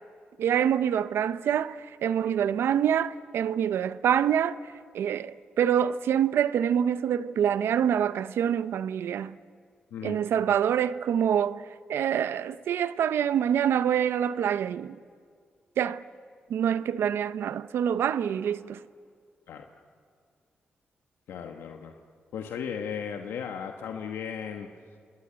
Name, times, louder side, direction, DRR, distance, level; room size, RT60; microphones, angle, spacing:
voice 1, 0.4-4.6 4.9-9.4 10.0-11.6 11.9-15.0 15.8-16.0 16.5-18.8, right 9 dB, 85° right, 0.7 m, -26 dB
voice 2, 21.3-21.9 22.3-24.7, left 7 dB, 90° left, 1.2 m, -36 dB
28.0 x 20.5 x 8.9 m
cardioid pair, 55°, 4 cm